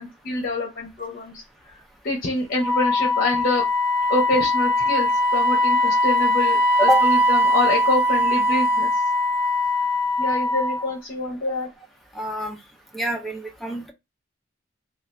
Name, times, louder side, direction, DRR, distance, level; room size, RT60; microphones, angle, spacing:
voice 1, 0.0-1.4 2.0-3.6 4.1-8.9 10.2-11.7, left 2 dB, 50° left, 0.8 m, -26 dB
Wind instrument woodwind instrument, 2.6-10.9, left 1 dB, 25° right, 1.0 m, -21 dB
voice 2, 12.2-12.6 12.9-13.9, equal, ahead, 0.6 m, -25 dB
2.7 x 2.4 x 3.2 m
head